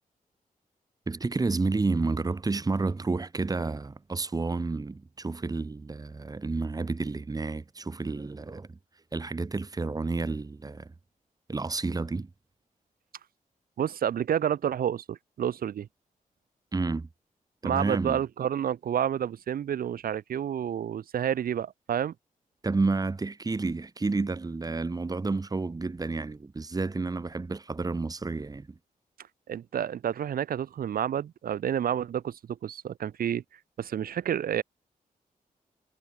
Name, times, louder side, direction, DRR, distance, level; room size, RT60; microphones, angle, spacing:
voice 1, 1.1-8.7 9.1-10.9 11.5-12.3 16.7-17.1 17.6-18.2 22.6-28.7, right 3 dB, 25° right, 4.2 m, -30 dB
voice 2, 13.8-15.9 17.6-22.1 29.5-33.4 33.8-34.6, right 9 dB, 85° right, 1.2 m, -29 dB
wide cardioid pair, 140°, 15 cm